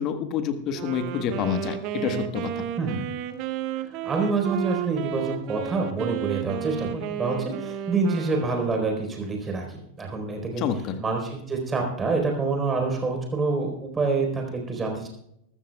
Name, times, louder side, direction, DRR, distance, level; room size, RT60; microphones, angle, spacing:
voice 1, 0.0-2.7 10.6-11.0, left 7 dB, 35° left, 10 dB, 1.5 m, -28 dB
Wind instrument woodwind instrument, 0.7-9.1, right 10 dB, 40° right, 1.0 m, -33 dB
voice 2, 2.8-3.2 3.8-10.7 11.0-15.1, right 4 dB, 15° right, 2 dB, 4.2 m, -27 dB
22.0 x 14.0 x 2.3 m, 0.76 s
figure-of-eight pair, 90°, 0 cm